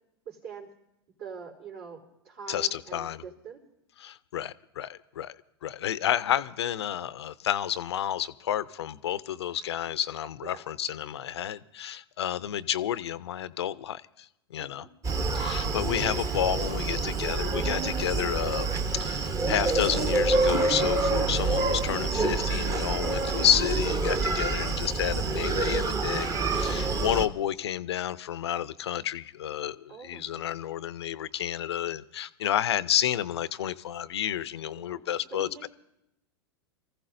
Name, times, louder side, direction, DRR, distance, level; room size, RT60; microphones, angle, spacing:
voice 1, 0.3-0.7 1.2-3.6 10.4-10.6 14.6-14.9 23.0-23.5 24.4-24.9 29.9-30.5 32.4-32.7 34.8-35.7, right 6 dB, 65° right, 3.7 m, -44 dB
voice 2, 2.5-3.2 4.0-5.3 5.6-14.3 14.5-14.9 15.3-35.7, left 11 dB, 75° left, 0.5 m, -30 dB
Screaming, 15.0-27.3, right 3 dB, 25° right, 0.9 m, -27 dB
26.5 x 15.0 x 2.6 m
hypercardioid pair, 100°, 14 cm